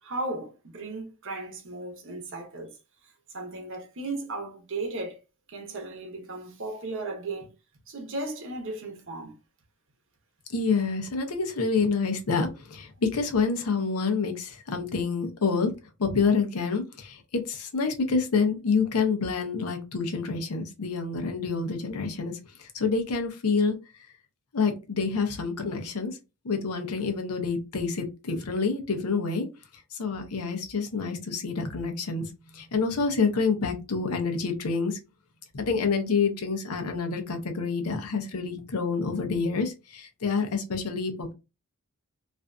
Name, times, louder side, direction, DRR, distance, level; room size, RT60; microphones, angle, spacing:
voice 1, 0.0-2.7 3.3-5.2 5.5-7.5 7.9-9.4, right 2 dB, 60° right, 0.8 m, -35 dB
voice 2, 10.5-15.7 16.0-23.8 24.5-26.2 26.4-29.5 30.0-32.3 32.5-35.0 35.5-41.3, left 4 dB, 80° left, 0.7 m, -27 dB
2.5 x 2.5 x 2.2 m
head